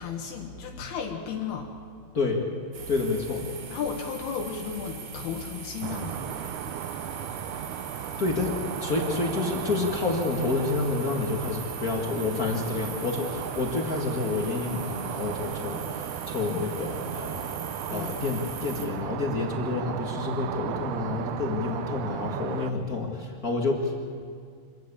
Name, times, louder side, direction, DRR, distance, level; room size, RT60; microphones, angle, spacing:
voice 1, 0.0-1.8 3.7-6.4 17.9-18.4, left 6 dB, 80° left, 1 dB, 3.5 m, -34 dB
voice 2, 2.1-2.4 2.9-3.5 8.2-17.5 17.9-24.1, left 3 dB, 40° left, 1 dB, 1.3 m, -29 dB
sound 1, 2.7-18.9, right 5 dB, 60° right, 3.5 m, -40 dB
sound 2, 5.8-22.7, right 11 dB, 75° right, 1.8 m, -36 dB
26.0 x 14.0 x 8.6 m, 2.1 s
omnidirectional pair, 4.4 m